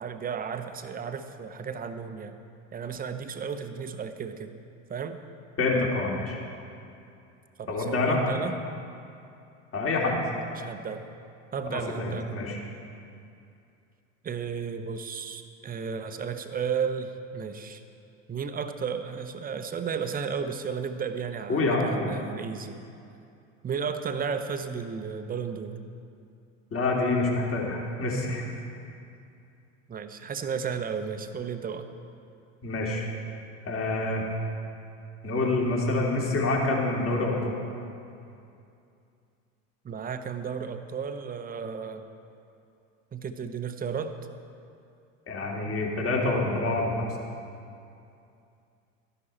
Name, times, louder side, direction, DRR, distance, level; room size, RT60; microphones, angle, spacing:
voice 1, 0.0-2.4 2.7-4.5 4.9-5.2 7.6-8.6 10.3-11.0 11.5-12.3 14.2-17.8 18.3-22.8 23.6-25.8 29.9-31.9 39.8-42.1 43.1-44.2, right 6 dB, 20° right, 9 dB, 0.8 m, -33 dB
voice 2, 5.6-6.4 7.7-8.2 9.7-10.2 11.7-12.6 21.5-22.1 26.7-28.5 32.6-33.0 33.6-34.2 35.2-37.5 45.3-47.1, left 2 dB, 35° left, -2 dB, 2.8 m, -27 dB
13.0 x 11.0 x 4.3 m, 2.6 s
hypercardioid pair, 75°, 39 cm